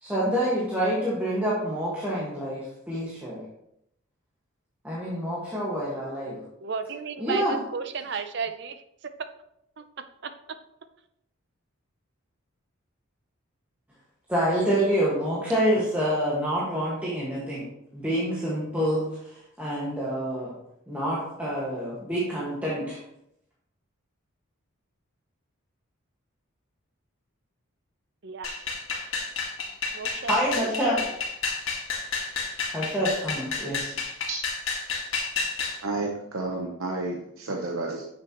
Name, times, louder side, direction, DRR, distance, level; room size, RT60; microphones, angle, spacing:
voice 1, 0.0-3.4 4.8-6.4 7.2-7.6 14.3-17.6 17.9-19.1 19.6-20.5 20.9-23.0 30.2-31.0 32.7-33.9, equal, 5° right, -8 dB, 1.6 m, -27 dB
voice 2, 6.6-8.8 9.2-9.3 9.8-9.9 10.2-10.3 28.2-28.5 29.9-30.9, right 5 dB, 50° right, 10 dB, 0.6 m, -33 dB
sound 1, 28.4-35.8, left 4 dB, 70° left, 1.7 m, -31 dB
voice 3, 35.8-38.1, right 3 dB, 75° right, 0 dB, 0.9 m, -31 dB
9.8 x 6.7 x 3.0 m, 0.79 s
head